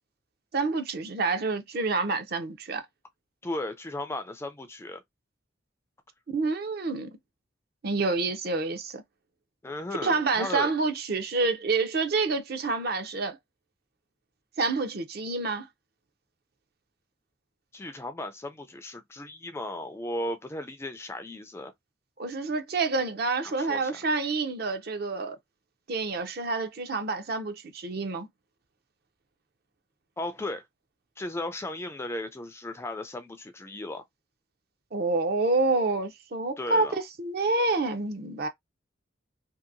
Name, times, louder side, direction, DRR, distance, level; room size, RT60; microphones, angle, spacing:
voice 1, 0.5-2.8 6.3-7.1 7.8-9.0 10.0-13.4 14.6-15.7 22.2-25.4 25.9-28.3 34.9-38.5, right 3 dB, 50° right, 0.6 m, -28 dB
voice 2, 3.4-5.0 9.6-10.7 17.7-21.7 23.4-24.0 30.2-30.6 31.2-34.0 36.6-37.0, left 1 dB, 15° left, 0.3 m, -36 dB
2.8 x 2.6 x 2.5 m
head